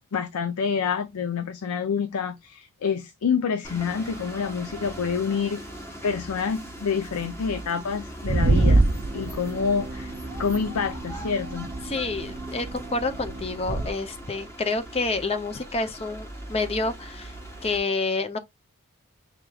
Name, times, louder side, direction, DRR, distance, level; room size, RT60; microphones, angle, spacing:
voice 1, 0.1-5.6 6.0-8.8 9.1-10.1 10.4-11.7, left 6 dB, 80° left, 0.5 m, -27 dB
sound 1, 3.6-17.8, right 1 dB, 10° left, 1.1 m, -40 dB
sound 2, 8.3-13.9, right 2 dB, 30° right, 0.4 m, -26 dB
voice 2, 11.9-17.3 17.6-18.4, left 3 dB, 25° left, 0.5 m, -28 dB
4.8 x 3.5 x 2.3 m
head